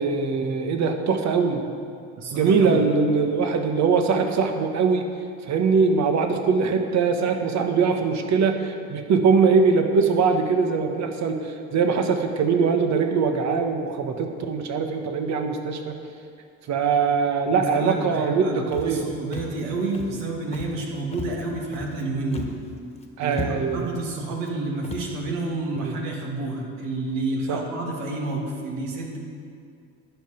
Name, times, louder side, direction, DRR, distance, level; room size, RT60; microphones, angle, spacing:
voice 1, 0.0-1.6 2.3-5.1 5.5-16.0 16.7-19.1 23.2-23.9 25.8-25.9 27.5-27.6, right 5 dB, 55° right, 5 dB, 1.4 m, -22 dB
voice 2, 2.2-2.8 17.5-22.5 23.2-29.2, right 2 dB, 75° right, -1 dB, 2.6 m, -29 dB
Walk footsteps, 18.7-19.0 19.3-19.6 19.9-20.2 20.5-20.8 21.1-22.0 22.3-22.7 23.0-23.1 23.3-23.8 24.4-24.5 24.8-25.1, left 3 dB, 20° left, 1.7 m, -36 dB
11.5 x 5.9 x 9.0 m, 2.3 s
supercardioid pair, 70°, 33 cm